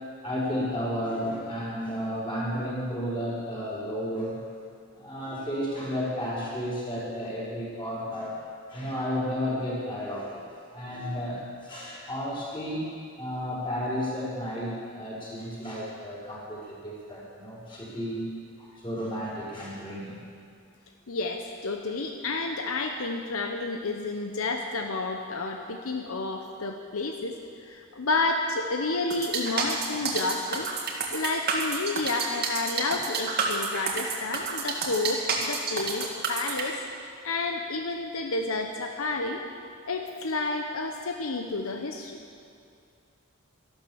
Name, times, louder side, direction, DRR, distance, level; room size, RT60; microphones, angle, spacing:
voice 1, 0.2-4.4 4.9-8.4 8.7-12.9 13.2-18.3 18.6-20.2, equal, 25° left, -7 dB, 4.9 m, -32 dB
voice 2, 21.1-27.4 27.6-39.4 39.9-42.2, left 3 dB, 75° left, 3 dB, 0.9 m, -30 dB
sound 1, 29.1-36.6, right 4 dB, 50° right, 2.0 m, -29 dB
13.0 x 12.0 x 7.0 m, 2.3 s
head